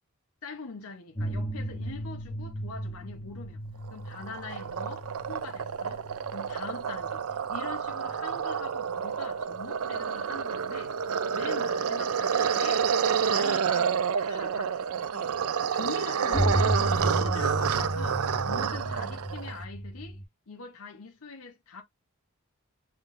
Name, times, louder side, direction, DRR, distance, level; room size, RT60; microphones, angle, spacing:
voice 1, 0.4-3.6 3.9-6.0 6.3-11.0 11.3-12.9 13.2-20.2 20.5-21.8, left 4 dB, 80° left, 0.8 m, -43 dB
sound 1, 1.2-10.5 11.4-11.5 16.3-20.2, equal, 20° left, 1.1 m, -34 dB
sound 2, 3.9-19.6, right 7 dB, 80° right, 0.5 m, -29 dB
5.8 x 3.4 x 2.5 m
head